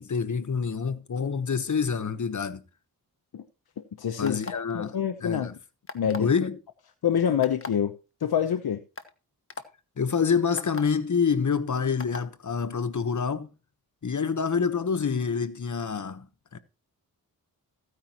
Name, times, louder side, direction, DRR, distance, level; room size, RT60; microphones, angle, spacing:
voice 1, 0.0-2.6 4.2-5.0 5.2-5.5 6.2-6.6 10.0-13.5 14.0-16.3 16.5-16.6, left 6 dB, 50° left, 1.2 m, -27 dB
voice 2, 4.0-5.5 5.9-6.3 7.0-8.8, left 8 dB, 70° left, 0.9 m, -27 dB
sound 1, 4.2-4.7 5.9-6.3 7.4-7.7 8.4-8.5 9.0-9.1 9.5-9.6 10.6-10.8 12.0-12.2, left 3 dB, 35° left, 1.4 m, -37 dB
15.0 x 9.7 x 3.0 m
cardioid pair, 55°, 39 cm